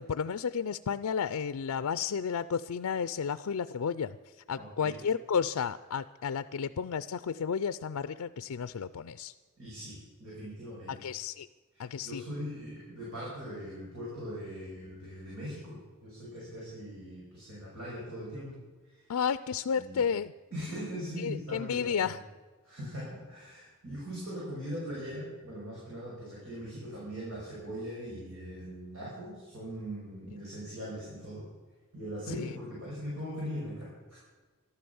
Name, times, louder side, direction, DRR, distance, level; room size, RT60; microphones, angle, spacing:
voice 1, 0.0-4.2 4.5-9.3 10.9-11.5 11.8-12.2 19.1-20.3 21.2-22.2 32.3-32.5, left 6 dB, 85° left, 13 dB, 0.4 m, -32 dB
voice 2, 4.6-5.0 9.6-11.0 11.7-18.5 18.8-19.0 19.7-20.0 20.5-22.1 22.6-31.4 31.9-34.2, equal, 65° right, -6 dB, 6.2 m, -40 dB
13.5 x 12.5 x 7.0 m, 1.3 s
head